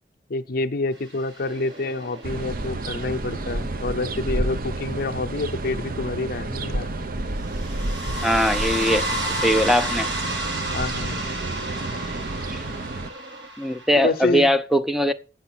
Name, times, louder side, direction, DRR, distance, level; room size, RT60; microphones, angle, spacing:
voice 1, 0.3-6.9 10.7-11.2 14.0-14.5, left 3 dB, 55° left, 0.6 m, -27 dB
sound 1, 1.1-2.2 7.4-14.2, right 1 dB, 75° right, 2.1 m, -31 dB
sound 2, 1.5-13.5, right 2 dB, 30° right, 0.9 m, -43 dB
sound 3, 2.2-13.1, right 2 dB, 55° right, 0.6 m, -30 dB
voice 2, 8.2-9.1 9.4-10.1 12.5-12.6 13.6-15.1, equal, ahead, 0.5 m, -20 dB
7.7 x 7.0 x 5.9 m
head